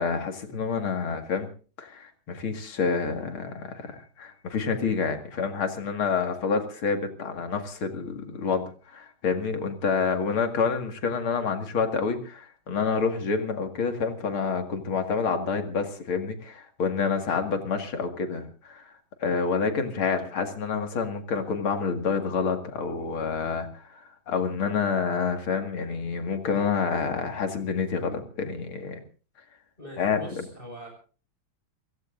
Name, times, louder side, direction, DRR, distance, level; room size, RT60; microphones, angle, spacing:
voice 1, 0.0-1.5 1.8-8.6 8.9-18.8 19.2-23.7 23.9-29.0 30.0-30.5, left 5 dB, 80° left, 6 dB, 2.9 m, -28 dB
voice 2, 29.8-30.9, equal, 25° left, 1 dB, 5.9 m, -42 dB
29.0 x 16.0 x 2.6 m, 0.38 s
omnidirectional pair, 2.3 m